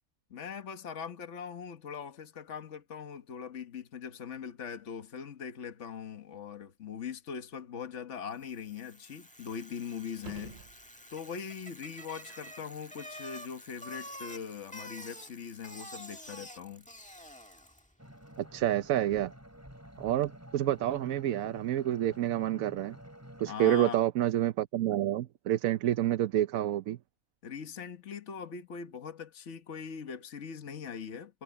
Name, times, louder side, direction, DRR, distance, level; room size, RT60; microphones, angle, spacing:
voice 1, 0.3-10.6 11.1-16.9 23.5-24.0 27.4-31.4, left 7 dB, 60° left, 1.6 m, -41 dB
Bicycle, 8.5-17.9, equal, 5° left, 1.5 m, -48 dB
sound 1, 10.1-11.4 16.2-16.3, right 5 dB, 40° right, 0.9 m, -49 dB
sound 2, 18.0-23.5, equal, 10° right, 6.1 m, -50 dB
voice 2, 18.4-19.3 20.0-23.0 23.4-27.0, right 12 dB, 90° right, 1.1 m, -28 dB
omnidirectional pair, 1.4 m